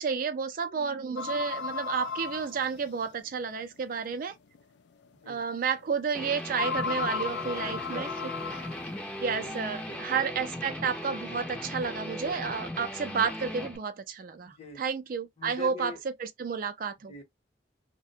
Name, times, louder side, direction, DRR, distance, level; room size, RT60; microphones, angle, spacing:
voice 1, 0.0-4.3 5.3-8.1 8.5-8.6 9.2-17.1, right 6 dB, 50° right, 0.4 m, -31 dB
sound 1, 1.2-3.2 3.9-4.0 4.5-4.6 6.5-9.0, left 6 dB, 70° left, 0.3 m, -35 dB
Guitar, 6.1-13.8, left 1 dB, 10° left, 0.5 m, -38 dB
voice 2, 7.6-8.6 9.3-9.5 9.9-10.2 14.4-14.8 15.4-16.0 17.1-17.2, left 2 dB, 35° left, 0.8 m, -44 dB
2.4 x 2.1 x 2.7 m
head